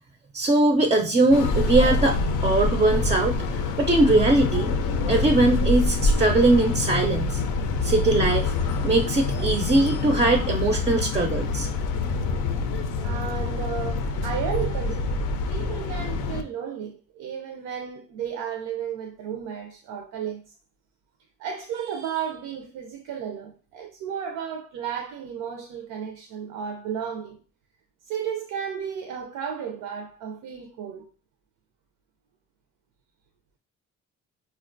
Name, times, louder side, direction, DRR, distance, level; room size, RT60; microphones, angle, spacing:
voice 1, 0.3-3.4 3.8-4.7 5.1-7.4 7.8-8.5 8.8-11.7, right 2 dB, 25° right, 0.3 m, -21 dB
sound 1, 1.3-16.4, left 3 dB, 85° left, 0.5 m, -26 dB
voice 2, 13.0-20.5 21.4-27.4 28.0-31.1, right 7 dB, 85° right, 0.5 m, -33 dB
4.2 x 2.2 x 2.5 m
cardioid pair, 90°, 30 cm